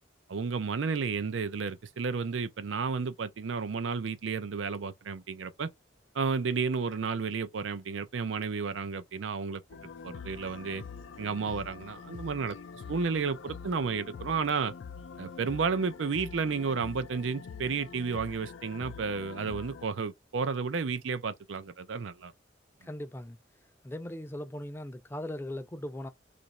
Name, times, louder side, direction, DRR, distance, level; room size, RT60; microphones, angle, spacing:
voice 1, 0.3-5.7 6.1-9.6 10.0-10.8 11.2-12.6 12.9-14.7 15.2-22.3, right 5 dB, 80° right, 0.5 m, -32 dB
sound 1, 9.7-19.9, left 5 dB, 80° left, 0.4 m, -45 dB
voice 2, 22.8-23.4 23.8-26.1, left 1 dB, 10° left, 0.4 m, -39 dB
3.0 x 2.5 x 4.1 m
head